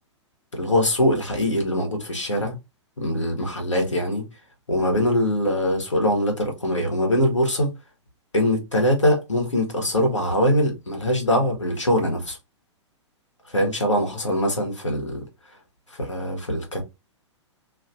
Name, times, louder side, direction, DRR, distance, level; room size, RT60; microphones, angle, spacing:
voice 1, 0.5-2.5 3.0-4.2 4.7-7.7 8.3-12.4 13.5-15.2 15.9-16.8, equal, 80° left, 1.2 m, -22 dB
2.8 x 2.5 x 2.5 m
figure-of-eight pair, 105°, 15 cm